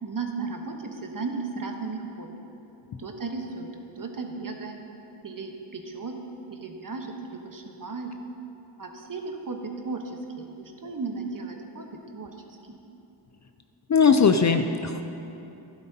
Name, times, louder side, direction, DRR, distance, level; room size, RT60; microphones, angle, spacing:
voice 1, 0.0-2.3 3.0-3.7 4.0-4.8 5.2-6.2 6.5-8.1 8.8-11.9 12.1-12.3 12.7-12.8 14.3-14.4, right 4 dB, 40° right, 3 dB, 1.1 m, -35 dB
voice 2, 13.9-15.0, left 5 dB, 40° left, 7 dB, 0.4 m, -19 dB
12.5 x 11.5 x 2.8 m, 2.9 s
cardioid pair, 70°, 48 cm